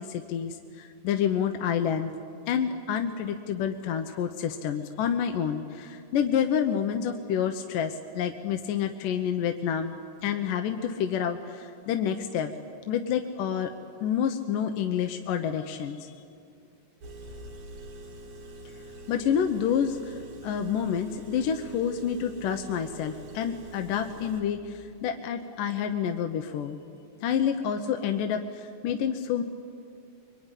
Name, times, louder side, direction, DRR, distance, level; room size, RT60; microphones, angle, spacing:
voice 1, 0.0-2.1 2.5-12.5 12.9-13.7 14.0-16.2 19.1-26.8 27.2-29.4, left 8 dB, 80° left, 5 dB, 2.6 m, -28 dB
Engine, 17.0-24.4, right 1 dB, 85° right, 4.8 m, -45 dB
24.5 x 24.0 x 9.9 m, 2.4 s
omnidirectional pair, 3.8 m